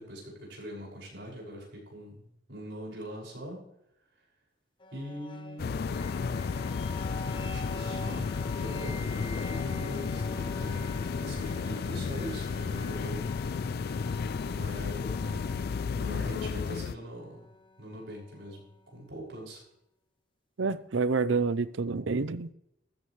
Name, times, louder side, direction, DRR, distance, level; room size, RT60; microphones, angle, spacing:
voice 1, 0.0-3.6 4.1-4.2 4.9-5.7 7.4-13.3 14.4-17.5 17.8-19.6, equal, 70° right, -3 dB, 6.0 m, -42 dB
sound 1, 4.8-18.8, left 2 dB, 25° left, 0.7 m, -46 dB
sound 2, 5.6-16.9, left 5 dB, 55° left, 0.3 m, -33 dB
voice 2, 20.6-22.5, right 4 dB, 85° right, 15 dB, 0.6 m, -28 dB
14.0 x 14.0 x 3.2 m, 0.79 s
head